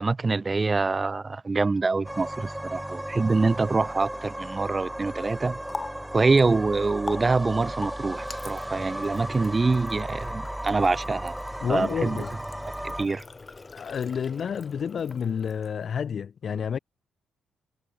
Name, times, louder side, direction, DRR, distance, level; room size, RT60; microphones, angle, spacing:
voice 1, 0.0-5.6 6.1-11.3 11.7-12.2 13.0-13.2, right 3 dB, 30° right, 0.4 m, -25 dB
sound 1, 2.0-13.1, right 1 dB, 10° right, 1.4 m, -35 dB
Water tap faucet, 5.2-16.0, left 3 dB, 30° left, 5.1 m, -43 dB
voice 2, 11.6-12.3 13.7-16.8, left 7 dB, 55° left, 1.4 m, -29 dB
hypercardioid pair, 45°, 0 cm